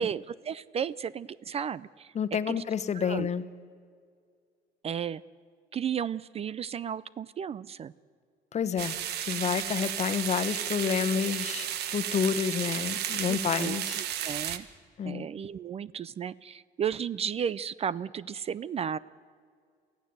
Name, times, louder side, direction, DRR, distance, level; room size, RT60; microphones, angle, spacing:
voice 1, 0.0-2.1 2.5-2.6 2.9-3.3 4.8-5.2 5.7-7.9 13.3-14.7 15.0-19.0, right 8 dB, 35° right, 20 dB, 0.4 m, -34 dB
voice 2, 2.1-3.4 8.5-9.0 9.2-14.0 15.0-15.3, left 7 dB, 40° left, 11 dB, 1.1 m, -29 dB
sound 1, 8.8-14.6, right 10 dB, 75° right, 1.3 m, -33 dB
23.5 x 15.5 x 7.9 m, 2.1 s
cardioid pair, 110°, 17 cm